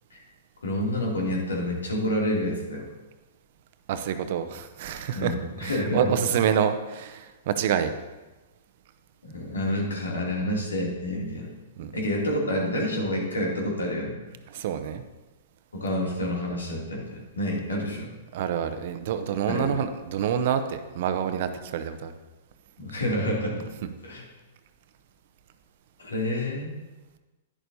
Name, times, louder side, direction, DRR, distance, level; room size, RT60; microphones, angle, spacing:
voice 1, 0.6-2.8 5.1-6.3 9.2-11.5 11.9-14.2 15.7-18.1 19.5-19.8 22.8-23.7 24.0-24.2 26.0-26.7, left 1 dB, 85° left, -2 dB, 2.6 m, -28 dB
voice 2, 3.9-5.3 5.6-7.9 11.8-11.9 14.5-15.0 18.3-22.1, right 8 dB, 55° right, 9 dB, 0.8 m, -27 dB
11.0 x 10.0 x 2.7 m, 1.1 s
hypercardioid pair, 115°, 0 cm